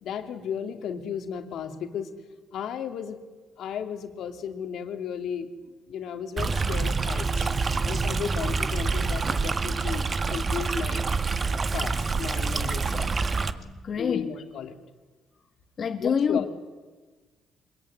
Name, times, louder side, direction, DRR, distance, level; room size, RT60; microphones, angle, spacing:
voice 1, 0.0-2.1 2.5-3.2 3.6-5.5 5.9-7.5 7.8-11.1 11.7-13.1 13.9-14.8 16.0-16.5, left 7 dB, 75° left, 6 dB, 3.0 m, -34 dB
Stream, 6.4-13.5, right 4 dB, 35° right, 1.6 m, -27 dB
voice 2, 13.5-14.3 15.8-16.5, left 6 dB, 50° left, 6 dB, 1.7 m, -27 dB
25.0 x 21.5 x 10.0 m, 1.3 s
cardioid pair, 90°, 0 cm